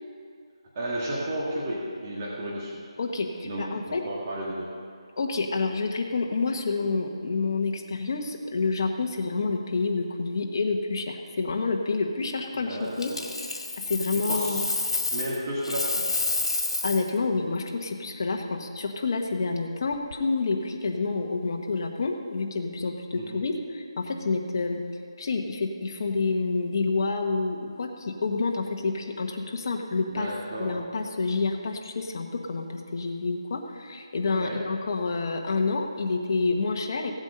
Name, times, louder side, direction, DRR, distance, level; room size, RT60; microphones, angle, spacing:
voice 1, 0.8-2.8 3.4-4.7 12.6-13.3 14.2-14.7 15.1-16.2 23.2-23.4 30.1-30.9 34.4-34.7, right 1 dB, 30° right, -5 dB, 1.8 m, -33 dB
voice 2, 3.0-4.0 5.2-13.1 13.8-14.6 16.8-24.8 25.2-30.3 30.6-37.1, left 3 dB, 40° left, 3 dB, 1.3 m, -28 dB
Coin (dropping), 13.0-15.4 15.6-17.1 19.9-20.1, left 3 dB, 80° left, 1.8 m, -29 dB
16.5 x 8.0 x 5.5 m, 2.4 s
figure-of-eight pair, 170°, 3 cm